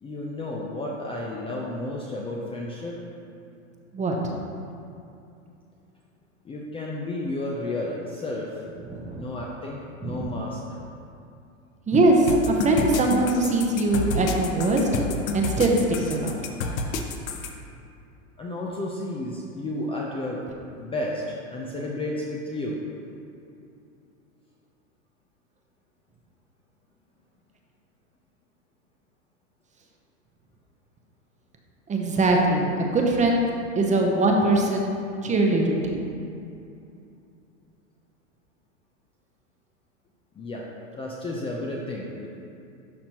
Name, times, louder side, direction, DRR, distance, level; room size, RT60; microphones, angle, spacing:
voice 1, 0.0-3.0 6.4-8.6 9.2-10.8 18.4-20.4 20.8-22.8 40.3-40.6 40.9-42.3, left 1 dB, 15° left, -3 dB, 0.5 m, -32 dB
voice 2, 3.9-4.3 8.9-9.3 10.0-10.2 11.9-14.9 15.3-16.4 31.9-33.4 33.8-36.0, right 2 dB, 20° right, 1 dB, 0.8 m, -22 dB
sound 1, 12.3-17.5, left 3 dB, 80° left, 0.8 m, -29 dB
12.0 x 4.3 x 3.0 m, 2.6 s
hypercardioid pair, 110°, 41 cm